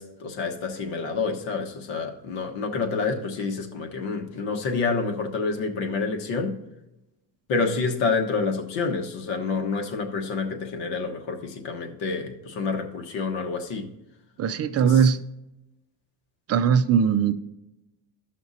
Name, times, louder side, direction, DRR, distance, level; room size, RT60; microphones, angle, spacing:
voice 1, 0.0-6.5 7.5-13.9 14.8-15.0, left 4 dB, 80° left, 3 dB, 1.4 m, -28 dB
voice 2, 14.4-15.2 16.5-17.3, right 7 dB, 35° right, 11 dB, 0.4 m, -20 dB
15.5 x 5.9 x 2.7 m, 0.95 s
cardioid pair, 145°, 44 cm